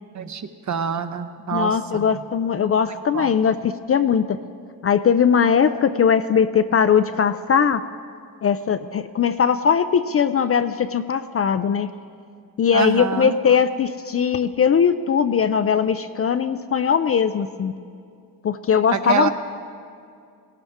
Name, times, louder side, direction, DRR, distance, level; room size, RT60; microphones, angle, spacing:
voice 1, 0.1-2.1 3.1-3.3 12.7-13.3 18.9-19.3, right 7 dB, 45° right, 9 dB, 0.8 m, -26 dB
voice 2, 1.5-4.4 4.8-7.8 8.4-11.9 12.6-17.7 18.4-19.3, left 7 dB, 35° left, 10 dB, 0.4 m, -20 dB
18.0 x 17.0 x 3.6 m, 2.3 s
cardioid pair, 115°, 41 cm